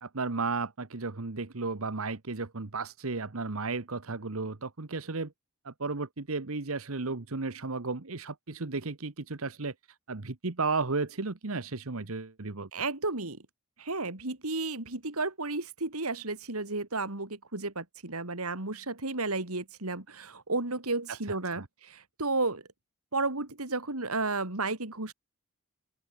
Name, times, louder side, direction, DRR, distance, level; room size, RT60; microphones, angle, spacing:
voice 1, 0.0-5.3 5.6-9.7 10.1-12.7 21.3-21.6, right 3 dB, 70° right, 1.2 m, -34 dB
voice 2, 12.7-13.4 13.8-22.6 23.1-25.1, right 3 dB, 90° right, 3.7 m, -33 dB
open air
head